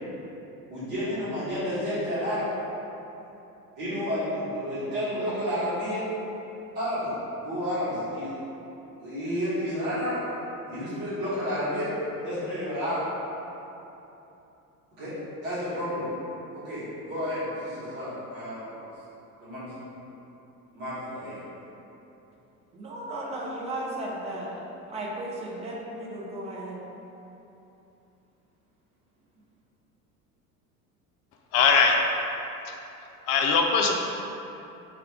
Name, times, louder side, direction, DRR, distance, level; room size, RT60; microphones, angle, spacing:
voice 1, 0.7-2.5 3.8-6.0 6.7-7.1 7.4-8.3 9.0-10.2 10.7-11.9 12.2-13.0 15.0-15.1 15.4-16.1 16.5-18.8 19.4-19.7 20.7-21.4, equal, 50° right, -12 dB, 1.5 m, -30 dB
voice 2, 22.7-24.6 24.9-26.8, right 1 dB, 15° right, -3 dB, 0.5 m, -35 dB
voice 3, 31.5-31.9 33.3-33.9, left 5 dB, 50° left, 2 dB, 0.5 m, -20 dB
3.5 x 2.2 x 3.5 m, 3.0 s
figure-of-eight pair, 65°, 46 cm